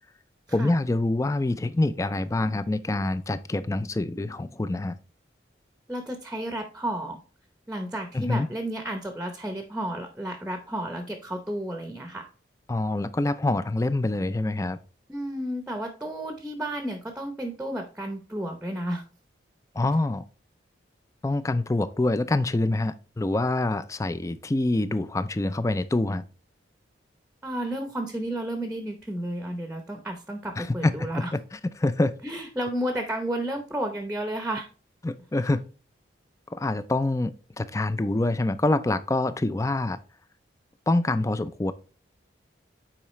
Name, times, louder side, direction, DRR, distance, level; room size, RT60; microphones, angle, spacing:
voice 1, 0.5-5.0 8.1-8.5 12.7-14.8 19.7-20.2 21.2-26.2 30.6-32.1 35.0-35.6 36.5-40.0 40.9-41.7, left 2 dB, 15° left, 14 dB, 0.3 m, -26 dB
voice 2, 5.9-7.2 7.7-12.3 15.1-19.0 27.4-31.3 32.2-34.7, right 1 dB, 5° right, 6 dB, 0.7 m, -32 dB
8.8 x 4.8 x 3.1 m, 0.36 s
head